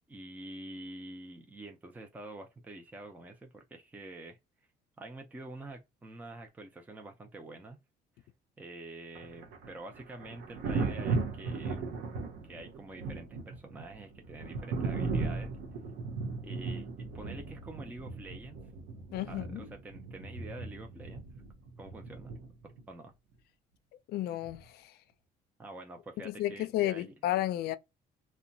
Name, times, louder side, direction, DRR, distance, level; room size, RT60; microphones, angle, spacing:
voice 1, 0.1-4.4 5.0-7.8 8.6-11.9 12.4-15.6 16.4-18.6 19.2-21.2 21.8-22.3 22.6-23.1 25.6-27.1, right 2 dB, 10° right, 0.4 m, -47 dB
Thunder, 9.1-22.8 24.4-24.7, right 4 dB, 90° right, 0.7 m, -37 dB
voice 2, 19.1-19.7 24.1-24.9 26.2-27.8, left 13 dB, 70° left, 0.4 m, -32 dB
2.8 x 2.2 x 2.6 m
cardioid pair, 110°, 17 cm